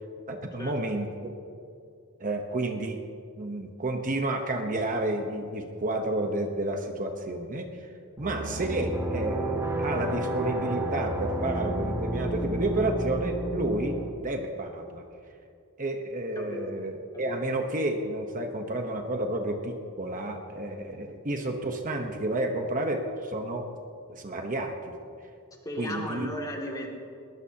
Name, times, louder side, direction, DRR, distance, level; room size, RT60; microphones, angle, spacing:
voice 1, 0.3-1.3 2.2-3.0 3.4-7.9 8.2-15.0 15.8-23.6 24.1-25.0 25.8-26.3, right 2 dB, 40° right, 4 dB, 1.1 m, -31 dB
sound 1, 8.2-14.1, right 1 dB, 15° right, 2.1 m, -31 dB
voice 2, 25.6-26.9, left 1 dB, 20° left, -1 dB, 2.5 m, -35 dB
21.0 x 19.5 x 2.9 m, 2.5 s
head